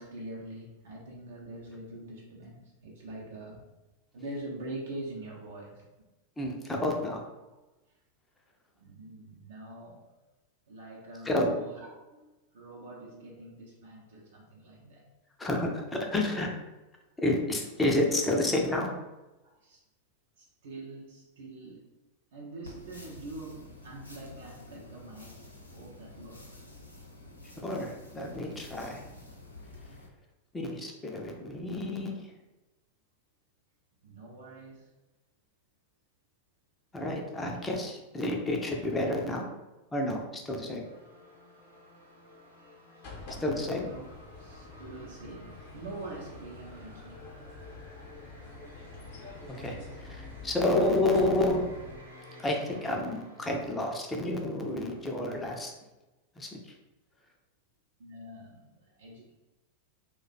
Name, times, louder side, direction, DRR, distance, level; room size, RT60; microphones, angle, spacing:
voice 1, 0.0-3.7 4.1-5.9 8.8-10.0 10.7-12.3 12.5-15.1 19.4-19.8 20.4-21.9 22.3-25.4 25.7-26.6 34.0-34.9 43.3-44.0 44.4-47.3 58.0-59.3, right 2 dB, 60° right, -3 dB, 0.6 m, -44 dB
voice 2, 6.4-7.2 11.2-11.5 15.4-16.5 17.2-18.9 27.6-29.0 30.5-32.2 36.9-39.4 39.9-40.8 43.4-43.9 49.5-51.6 52.4-55.7 56.4-56.7, left 1 dB, 10° left, 0 dB, 0.5 m, -30 dB
sound 1, 22.6-30.1, left 2 dB, 85° left, 0.6 m, -49 dB
sound 2, 40.8-55.7, left 1 dB, 85° right, 0.9 m, -53 dB
sound 3, 43.0-52.0, left 3 dB, 50° left, 0.8 m, -47 dB
2.4 x 2.2 x 4.0 m, 1.1 s
figure-of-eight pair, 90°, 0 cm